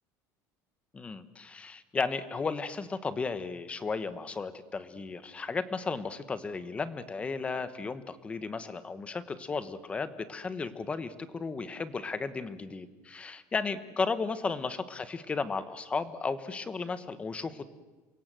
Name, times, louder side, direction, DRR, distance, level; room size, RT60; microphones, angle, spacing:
voice 1, 0.9-17.7, left 4 dB, 15° left, 12 dB, 1.2 m, -34 dB
28.5 x 24.0 x 7.7 m, 1.2 s
cardioid pair, 175°, 8 cm